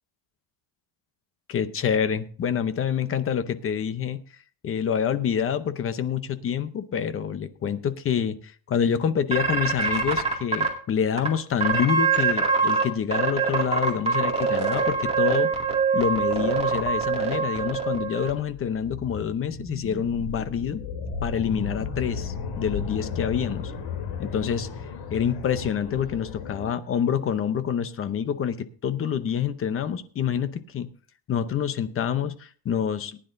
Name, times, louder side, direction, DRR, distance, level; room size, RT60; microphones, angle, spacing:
voice 1, 1.5-4.2 4.6-8.4 8.7-15.5 15.9-20.8 21.2-23.7 24.2-24.7 25.1-30.9 31.3-33.2, left 8 dB, 30° left, 12 dB, 0.7 m, -27 dB
sound 1, 9.3-10.7 11.2-11.3 11.6-12.8 13.1-18.3, right 5 dB, 15° right, 2.2 m, -23 dB
sound 2, 18.4-26.7, left 5 dB, 70° left, 3.1 m, -34 dB
19.0 x 10.0 x 2.6 m, 0.43 s
cardioid pair, 160°, 47 cm